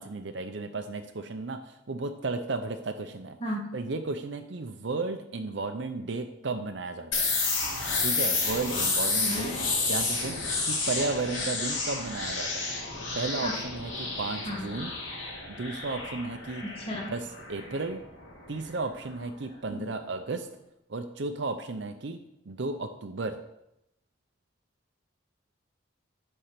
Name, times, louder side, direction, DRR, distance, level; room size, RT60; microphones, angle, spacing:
voice 1, 0.0-3.4 3.7-7.3 8.0-9.5 9.9-12.8 13.1-14.9 15.5-16.6 17.1-18.0 18.5-20.5 20.9-22.2 22.5-23.4, right 3 dB, 65° right, 6 dB, 0.6 m, -34 dB
sound 1, 7.1-18.7, left 3 dB, 75° left, 2.7 m, -31 dB
voice 2, 9.2-9.7 13.4-13.5 14.4-14.7 16.6-17.1 19.7-19.8, equal, 30° left, -1 dB, 1.9 m, -34 dB
10.0 x 4.4 x 6.7 m, 0.84 s
head